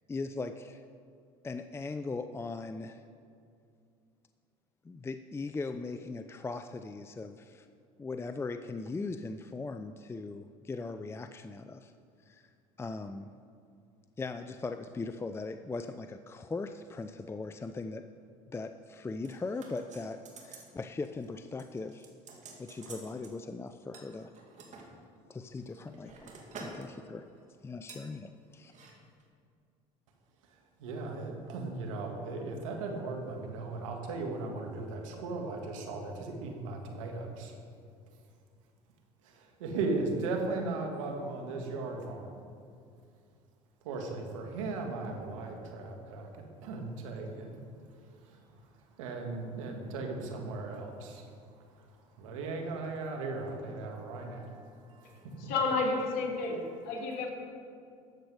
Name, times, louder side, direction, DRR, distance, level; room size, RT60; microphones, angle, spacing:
voice 1, 0.1-0.8 1.4-3.1 4.8-7.7 8.0-11.9 12.3-12.5 12.8-13.3 14.2-18.0 18.5-22.1 22.6-24.3 25.3-26.3 26.6-27.3 27.6-28.7, left 3 dB, 15° left, 8 dB, 0.5 m, -39 dB
sound 1, 19.2-20.7 21.0-21.3 21.6-23.3 23.9-24.9 25.5-26.9 27.1-27.4 27.9-28.1 28.6-28.9 29.2-29.3, right 4 dB, 50° right, 2.4 m, -49 dB
voice 2, 30.8-37.5 39.6-42.3 43.8-47.6 48.2-48.4 49.0-51.3 51.7-51.8 52.2-55.5, right 3 dB, 90° right, 2 dB, 1.7 m, -37 dB
voice 3, 55.4-56.6 56.8-57.3, left 3 dB, 65° left, -1 dB, 2.8 m, -30 dB
13.0 x 7.9 x 4.9 m, 2.4 s
supercardioid pair, 80°, 16 cm